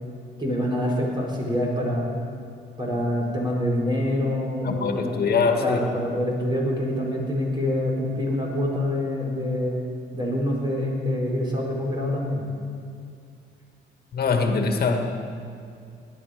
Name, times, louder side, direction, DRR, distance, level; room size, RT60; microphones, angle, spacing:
voice 1, 0.4-2.1 2.8-5.2 5.6-9.8 10.1-12.4, left 1 dB, 20° right, -3 dB, 4.6 m, -26 dB
voice 2, 4.6-5.9 14.1-15.0, left 4 dB, 50° left, 4 dB, 1.8 m, -23 dB
18.5 x 11.0 x 5.2 m, 2.4 s
cardioid pair, 90°, 20 cm